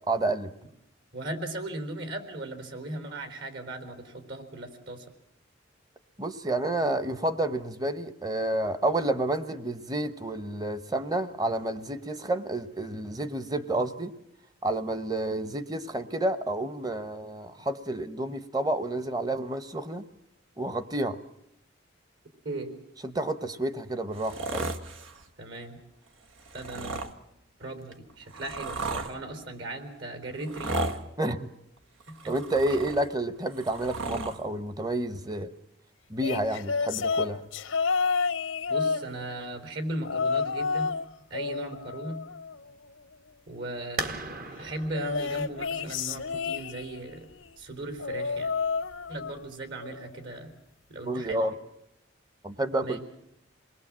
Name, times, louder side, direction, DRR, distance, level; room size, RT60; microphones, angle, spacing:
voice 1, 0.1-0.5 6.2-14.1 14.6-20.0 20.6-21.2 23.0-24.7 31.2-31.5 32.3-35.5 36.1-37.4 51.0-51.5 52.4-53.0, right 1 dB, 20° right, 12 dB, 1.0 m, -30 dB
voice 2, 1.1-5.0 22.4-22.7 25.4-25.8 26.5-27.0 27.6-31.0 32.1-32.3 38.7-40.9 41.3-42.2 43.5-44.2 44.6-47.3 47.6-48.5 49.1-50.5 50.9-51.5 52.8-53.0, right 2 dB, 65° right, 7 dB, 4.2 m, -37 dB
sound 1, 24.1-25.2 26.4-27.1 27.9-29.1 30.4-31.0 32.0-33.1 33.5-34.4 35.4-35.5, right 2 dB, 85° right, 1.6 m, -34 dB
sound 2, 36.2-39.5 40.0-41.0 41.3-42.9 44.9-47.1 48.0-49.5 49.8-50.2 51.3-51.4, left 5 dB, 80° left, 0.9 m, -30 dB
sound 3, 44.0-49.5, right 3 dB, 45° right, 1.3 m, -40 dB
28.0 x 20.5 x 7.5 m, 0.80 s
head